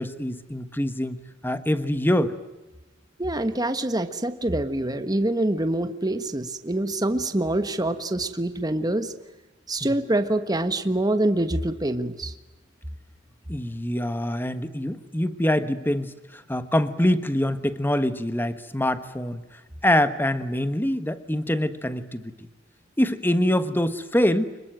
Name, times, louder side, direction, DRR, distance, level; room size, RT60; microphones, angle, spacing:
voice 1, 0.0-2.4 9.8-9.9 13.5-19.4 19.8-22.3 23.0-24.5, left 1 dB, 10° left, 11 dB, 1.3 m, -25 dB
voice 2, 3.2-9.1 9.7-12.3, right 1 dB, 20° right, 9 dB, 1.3 m, -25 dB
25.5 x 22.0 x 9.2 m, 1.1 s
head